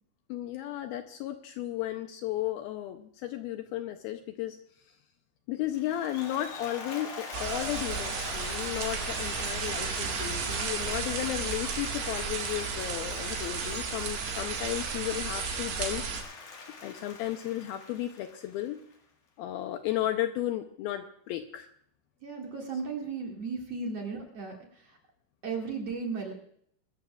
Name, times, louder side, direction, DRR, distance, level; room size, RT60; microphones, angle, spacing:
voice 1, 0.3-4.6 5.5-16.0 16.8-18.8 19.4-21.7, left 13 dB, 80° left, 7 dB, 2.3 m, -34 dB
Applause, 5.7-18.9, left 4 dB, 55° left, 3.0 m, -42 dB
sound 1, 7.3-16.2, right 6 dB, 75° right, 3.8 m, -34 dB
voice 2, 22.2-25.0 25.4-26.3, right 4 dB, 45° right, 0 dB, 2.6 m, -35 dB
23.5 x 13.5 x 2.4 m, 0.65 s
omnidirectional pair, 4.8 m